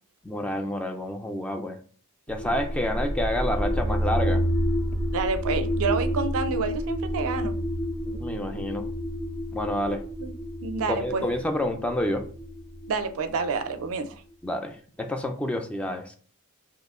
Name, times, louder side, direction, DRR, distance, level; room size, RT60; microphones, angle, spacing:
voice 1, 0.2-1.8 2.3-4.4 8.1-8.9 9.5-10.0 10.9-12.3 14.4-16.2, left 1 dB, 5° left, 0.3 m, -29 dB
sound 1, 2.3-14.1, equal, 80° left, 1.5 m, -29 dB
voice 2, 5.1-7.6 10.2-10.3 10.6-11.3 12.9-14.2, right 4 dB, 65° right, 0.4 m, -28 dB
2.9 x 2.4 x 3.5 m
head